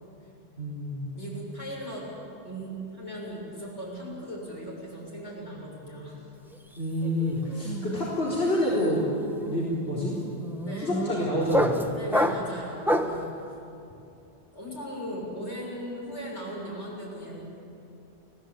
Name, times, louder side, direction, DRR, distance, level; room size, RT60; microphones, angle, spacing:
voice 1, 0.6-1.1 6.8-9.1 9.4-10.1 10.8-11.9, equal, 65° left, -7 dB, 4.4 m, -27 dB
voice 2, 1.1-2.1 2.4-6.2 10.6-11.0 12.0-13.4 14.5-17.4, equal, 85° left, -3 dB, 7.4 m, -38 dB
sound 1, 6.5-6.8 7.0-13.3, left 1 dB, ahead, 1.2 m, -29 dB
29.5 x 18.5 x 8.7 m, 2.7 s
omnidirectional pair, 1.1 m